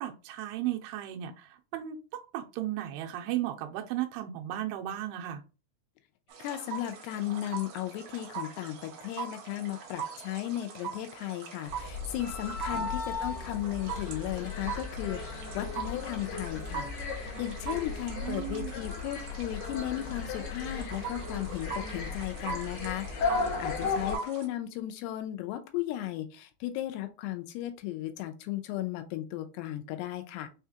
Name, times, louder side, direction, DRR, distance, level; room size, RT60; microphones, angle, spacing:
voice 1, 0.0-5.4 12.7-12.9 18.1-18.9 23.8-24.0, right 13 dB, 85° right, 3 dB, 2.6 m, -35 dB
sound 1, 6.3-24.5, right 6 dB, 70° right, 2.7 m, -42 dB
voice 2, 6.4-30.5, left 13 dB, 90° left, 7 dB, 2.7 m, -36 dB
sound 2, 11.7-24.2, left 4 dB, 65° left, 2.1 m, -36 dB
6.2 x 2.3 x 2.8 m, 0.32 s
omnidirectional pair, 4.6 m